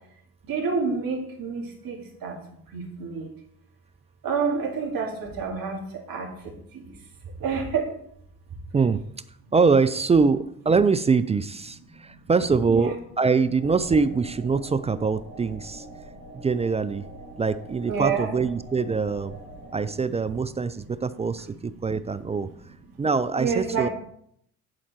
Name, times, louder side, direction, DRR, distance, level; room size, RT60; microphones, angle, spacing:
voice 1, 0.4-2.4 2.7-3.3 4.2-7.0 7.4-7.9 12.7-12.9 17.3-17.4 17.9-18.3 23.4-23.9, right 5 dB, 55° right, 0 dB, 2.5 m, -28 dB
voice 2, 8.7-9.0 9.5-15.9 16.4-17.0 17.4-19.4 19.7-22.5 23.0-23.9, right 4 dB, 15° right, 14 dB, 0.3 m, -23 dB
sound 1, 13.6-19.9, right 1 dB, 90° right, 2.6 m, -44 dB
10.5 x 4.3 x 4.3 m, 0.70 s
hypercardioid pair, 55°, 40 cm